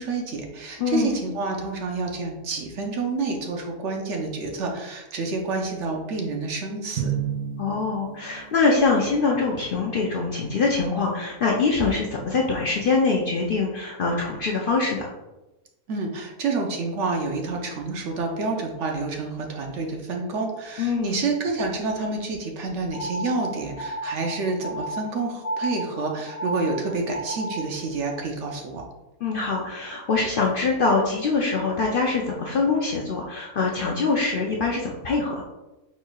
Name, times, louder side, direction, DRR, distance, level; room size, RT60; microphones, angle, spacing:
voice 1, 0.0-7.2 15.9-28.8, right 3 dB, 65° right, 2 dB, 0.9 m, -28 dB
voice 2, 0.8-1.2 7.6-15.1 20.8-21.3 29.2-35.4, left 4 dB, 70° left, -2 dB, 0.5 m, -24 dB
Drum, 7.0-9.1, right 9 dB, 85° right, 1.1 m, -31 dB
sound 1, 22.9-27.8, right 1 dB, 35° left, 0.9 m, -33 dB
4.6 x 4.2 x 2.3 m, 1.0 s
omnidirectional pair, 1.5 m